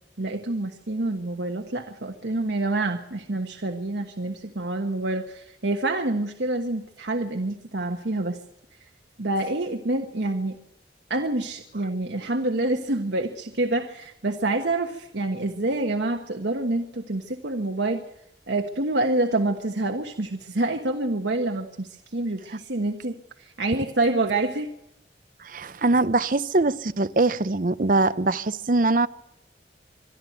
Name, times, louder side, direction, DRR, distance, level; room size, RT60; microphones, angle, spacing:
voice 1, 0.2-8.4 9.2-10.6 11.1-18.0 18.5-24.7, right 2 dB, 85° right, 1.3 m, -27 dB
voice 2, 25.4-29.1, right 2 dB, 50° right, 0.7 m, -22 dB
25.0 x 11.5 x 9.3 m
head